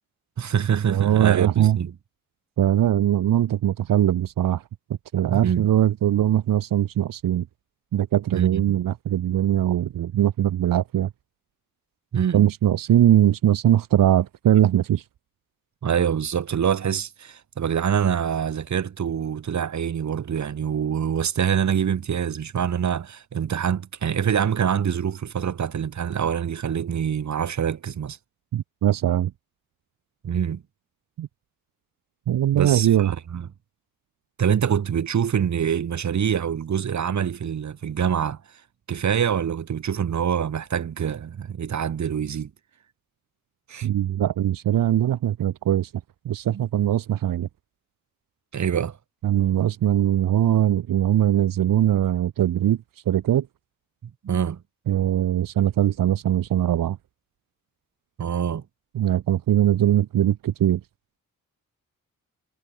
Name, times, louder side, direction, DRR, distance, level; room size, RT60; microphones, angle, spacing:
voice 1, 0.4-1.9 5.3-5.7 8.3-8.8 12.1-12.4 15.8-28.2 30.2-30.6 32.5-33.5 34.4-38.4 38.9-42.5 43.7-44.1 46.5-46.6 48.5-49.0 54.0-54.6 58.2-58.6, right 8 dB, 60° right, 2.0 m, -25 dB
voice 2, 0.9-1.8 2.6-4.6 5.1-7.5 7.9-11.1 12.3-15.0 28.5-29.3 31.2-31.3 32.3-33.1 43.8-45.9 46.2-47.5 49.2-52.8 53.1-53.5 54.9-57.0 58.9-60.8, right 11 dB, 80° right, 1.2 m, -21 dB
cardioid pair, 100°, 33 cm